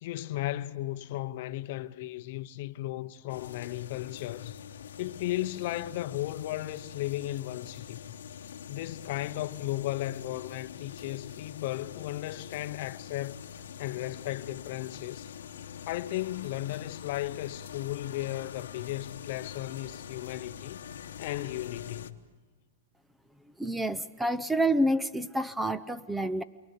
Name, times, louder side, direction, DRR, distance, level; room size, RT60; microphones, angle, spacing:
voice 1, 0.0-4.6 5.0-8.0 8.7-13.4 13.8-15.3 15.9-20.8 21.2-22.2, left 15 dB, 55° left, 0.8 m, -35 dB
sound 1, 3.3-22.1, left 8 dB, 80° left, 1.1 m, -45 dB
voice 2, 23.6-26.4, right 1 dB, 5° right, 0.7 m, -28 dB
27.5 x 23.5 x 6.8 m
hypercardioid pair, 125°, 0 cm